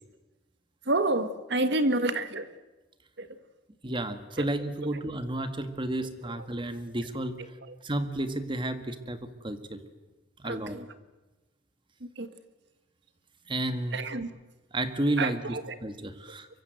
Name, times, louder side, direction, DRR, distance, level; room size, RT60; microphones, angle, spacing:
voice 1, 0.8-2.5 3.2-3.4 4.4-4.5 4.8-4.9 6.0-6.5 7.4-7.8 10.4-10.9 12.0-12.3 13.9-14.3 15.2-15.8, right 2 dB, 60° right, 10 dB, 1.7 m, -30 dB
voice 2, 3.8-7.3 7.8-9.8 10.4-10.8 13.5-14.0 14.7-16.5, right 1 dB, 25° right, 9 dB, 1.8 m, -32 dB
24.0 x 24.0 x 8.0 m, 1.1 s
head